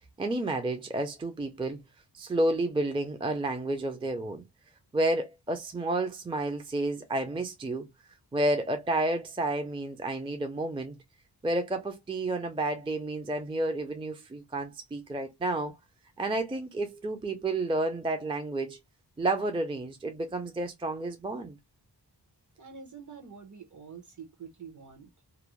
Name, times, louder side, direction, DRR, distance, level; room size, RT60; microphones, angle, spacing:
voice 1, 0.2-1.8 2.1-4.4 4.9-7.9 8.3-11.0 11.4-15.8 16.2-18.8 19.2-21.6, right 2 dB, 15° right, 0.4 m, -30 dB
voice 2, 22.6-25.1, right 6 dB, 45° right, 0.8 m, -46 dB
2.5 x 2.0 x 3.0 m
wide cardioid pair, 75°, 42 cm